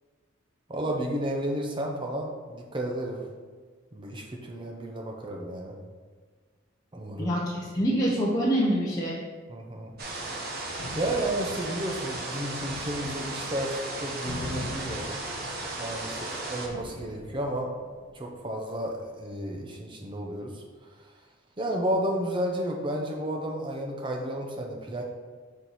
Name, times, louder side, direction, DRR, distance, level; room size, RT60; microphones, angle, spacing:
voice 1, 0.7-3.3 3.9-5.8 6.9-7.3 9.5-9.9 11.0-15.1 15.8-17.7 18.1-20.6 21.6-25.0, right 1 dB, 25° right, 1 dB, 0.6 m, -32 dB
voice 2, 7.2-9.2, equal, 20° left, -7 dB, 0.8 m, -25 dB
sound 1, 9.9-18.6, left 2 dB, 65° left, 0.7 m, -44 dB
sound 2, 10.0-16.7, right 2 dB, 50° right, 0.9 m, -35 dB
6.4 x 4.3 x 4.0 m, 1.5 s
head